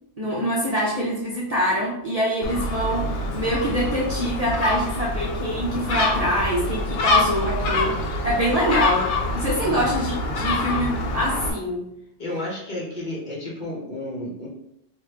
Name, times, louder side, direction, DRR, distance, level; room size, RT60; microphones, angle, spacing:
voice 1, 0.2-11.9, equal, 40° right, -5 dB, 0.6 m, -25 dB
Gull seagull, 2.4-11.5, left 2 dB, 90° left, 0.9 m, -25 dB
voice 2, 12.2-14.5, left 1 dB, 45° left, -4 dB, 1.0 m, -32 dB
3.1 x 2.5 x 3.4 m, 0.79 s
omnidirectional pair, 1.2 m